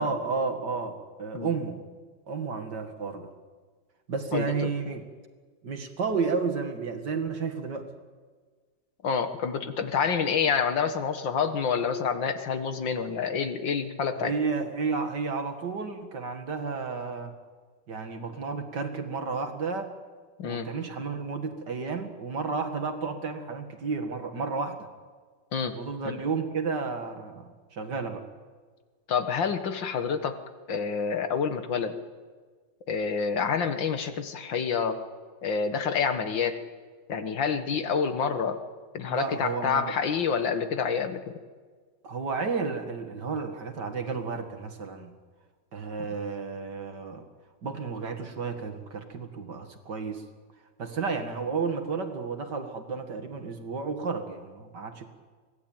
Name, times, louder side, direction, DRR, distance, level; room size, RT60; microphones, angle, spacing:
voice 1, 0.0-1.8 2.3-3.3 4.1-5.0 5.6-7.9 14.2-17.3 17.9-19.9 20.4-24.9 25.7-28.2 39.1-40.0 42.0-45.1 45.7-47.2 47.6-50.2 50.8-55.1, right 4 dB, 65° right, 6 dB, 2.6 m, -32 dB
voice 2, 4.3-4.7 9.0-14.3 20.4-20.7 25.5-25.8 29.1-30.4 30.7-32.0 32.9-35.0 35.4-36.6 37.1-38.6 38.9-41.2, left 6 dB, 85° left, 8 dB, 2.3 m, -28 dB
24.0 x 18.0 x 9.1 m, 1.5 s
omnidirectional pair, 2.0 m